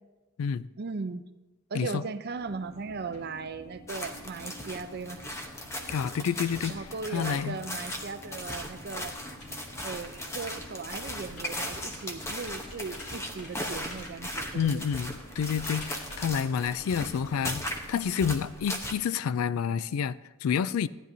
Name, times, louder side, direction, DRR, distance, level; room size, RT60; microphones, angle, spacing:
voice 1, 0.8-1.2 1.7-5.3 6.7-9.1 9.8-14.8, right 4 dB, 50° right, 0.5 m, -38 dB
sound 1, 2.3-17.9, equal, 30° left, 3.0 m, -50 dB
sound 2, 3.9-18.9, left 1 dB, 15° left, 0.8 m, -38 dB
voice 2, 5.9-6.8 7.1-7.6 14.5-20.9, left 7 dB, 80° left, 0.3 m, -29 dB
sound 3, 9.3-16.4, left 1 dB, 55° left, 2.8 m, -48 dB
14.5 x 10.0 x 2.7 m
head